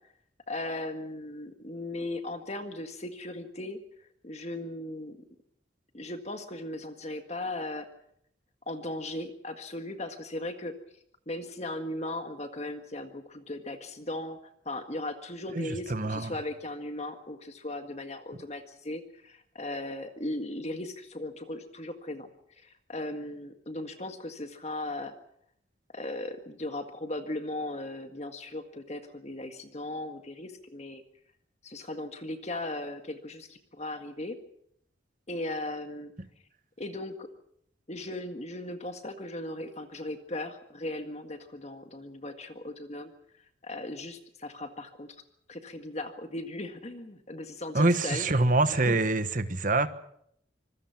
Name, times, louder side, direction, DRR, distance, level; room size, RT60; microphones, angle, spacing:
voice 1, 0.5-5.2 5.9-7.9 8.7-10.7 11.3-14.4 14.7-22.3 22.6-25.1 25.9-31.0 31.6-34.4 35.3-36.1 36.8-37.3 37.9-43.1 43.6-45.1 45.5-49.0, left 1 dB, 35° left, 7 dB, 1.7 m, -37 dB
voice 2, 15.5-16.4 47.7-49.9, right 2 dB, 45° right, 11 dB, 1.3 m, -25 dB
26.0 x 21.0 x 6.0 m, 0.71 s
head